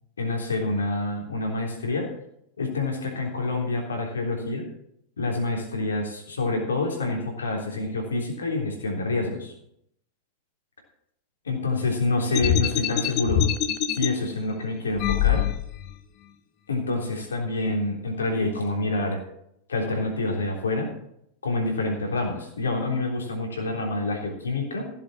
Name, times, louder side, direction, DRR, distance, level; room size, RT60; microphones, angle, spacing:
voice 1, 0.2-2.1 2.6-4.6 5.2-9.5 11.4-13.4 13.9-15.4 16.7-19.2 19.7-20.9 21.4-24.9, left 2 dB, 70° left, 1 dB, 3.4 m, -27 dB
sound 1, 12.3-14.1 15.0-15.9, left 10 dB, 40° left, 0.9 m, -24 dB
15.5 x 7.5 x 6.2 m, 0.74 s
figure-of-eight pair, 90°, 0 cm